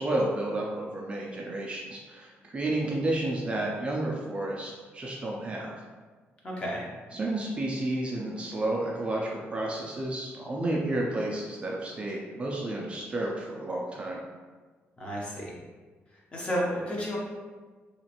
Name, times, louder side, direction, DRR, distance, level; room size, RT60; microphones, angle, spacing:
voice 1, 0.0-5.7 7.1-14.2, right 1 dB, 25° right, -3 dB, 0.3 m, -31 dB
voice 2, 6.4-6.8 15.0-15.5 16.3-17.2, equal, 25° left, -4 dB, 0.6 m, -31 dB
2.9 x 2.4 x 2.8 m, 1.4 s
wide cardioid pair, 175°, 5 cm